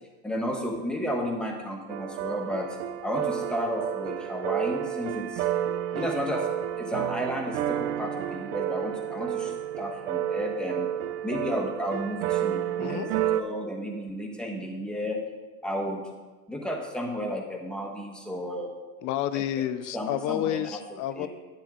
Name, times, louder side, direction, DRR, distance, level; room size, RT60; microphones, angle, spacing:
voice 1, 0.2-2.7 3.0-5.5 5.9-6.5 6.8-10.9 11.2-15.2 15.6-16.0 16.5-18.7 19.3-19.4 19.9-20.8 21.1-21.3, equal, ahead, 1 dB, 1.4 m, -32 dB
sound 1, 1.9-13.4, right 11 dB, 75° right, 0.7 m, -30 dB
voice 2, 12.8-13.1 19.0-21.3, left 12 dB, 45° left, 13 dB, 0.6 m, -30 dB
11.5 x 8.9 x 3.8 m, 1.3 s
supercardioid pair, 130°, 44 cm